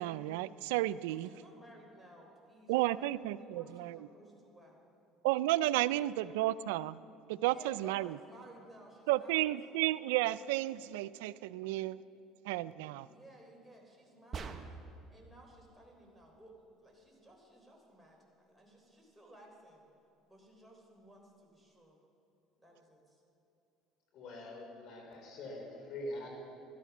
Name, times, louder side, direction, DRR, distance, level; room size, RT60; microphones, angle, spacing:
voice 1, 0.0-1.3 2.7-4.0 5.2-7.0 7.3-8.1 9.1-12.0 12.5-13.1, right 16 dB, 85° right, 17 dB, 0.3 m, -32 dB
voice 2, 1.1-3.1 3.4-4.8 7.4-9.5 12.6-14.8 15.1-19.8 20.3-22.0 22.6-23.2, right 1 dB, 5° right, -2 dB, 3.7 m, -58 dB
sound 1, 14.3-15.0, right 5 dB, 35° right, 1.0 m, -42 dB
voice 3, 24.1-26.5, left 1 dB, 60° left, 1 dB, 3.9 m, -44 dB
13.5 x 12.0 x 6.0 m, 2.8 s
supercardioid pair, 95°, 0 cm